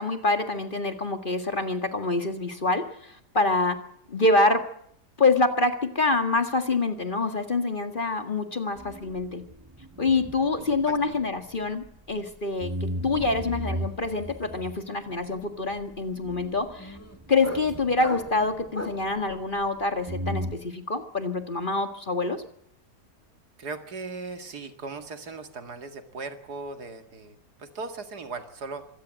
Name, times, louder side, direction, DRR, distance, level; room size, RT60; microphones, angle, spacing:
voice 1, 0.0-3.8 4.1-4.7 5.2-9.5 10.0-17.0 17.3-22.4, left 3 dB, 30° left, 8 dB, 1.9 m, -26 dB
sound 1, 8.7-12.2 12.6-19.8 20.1-20.6, equal, 15° right, 1.3 m, -37 dB
sound 2, 12.4-12.7 12.9-19.1, left 1 dB, 10° left, 2.2 m, -41 dB
voice 2, 23.6-28.9, right 3 dB, 70° right, 8 dB, 2.6 m, -38 dB
25.0 x 17.5 x 7.6 m, 0.68 s
omnidirectional pair, 1.8 m